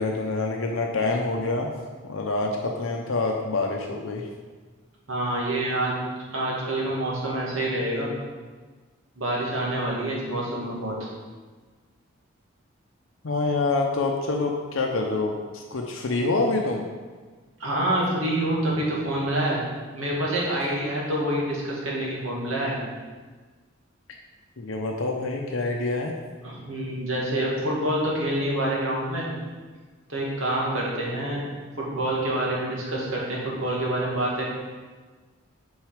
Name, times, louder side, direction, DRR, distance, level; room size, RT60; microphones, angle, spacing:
voice 1, 0.0-1.7 2.0-4.3 13.2-16.9 24.6-26.2, left 3 dB, 75° left, 1 dB, 0.7 m, -26 dB
voice 2, 5.1-5.9 6.3-8.1 9.2-11.0 17.6-19.6 19.9-22.8 26.4-29.3 30.1-31.4 31.8-34.5, right 1 dB, 80° right, -4 dB, 2.1 m, -27 dB
6.3 x 5.5 x 5.0 m, 1.4 s
head